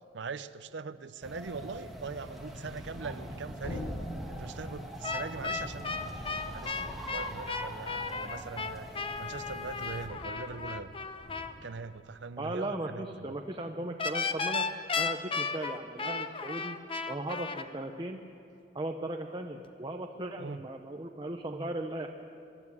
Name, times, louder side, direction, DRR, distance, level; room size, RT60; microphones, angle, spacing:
voice 1, 0.1-3.8 4.3-8.9 9.2-10.9 11.6-13.4 20.4-20.6, right 4 dB, 70° right, 13 dB, 0.6 m, -41 dB
sound 1, 1.2-10.1, equal, ahead, 2.2 m, -44 dB
sound 2, 1.9-7.9 8.3-11.6, equal, 75° left, 5.5 m, -45 dB
sound 3, 5.0-11.5 14.0-17.6, left 4 dB, 30° left, 0.8 m, -34 dB
voice 2, 12.4-14.6 15.0-16.8 17.1-18.2 18.7-22.1, right 1 dB, 25° right, 4 dB, 0.8 m, -37 dB
24.0 x 12.0 x 9.8 m, 2.7 s
head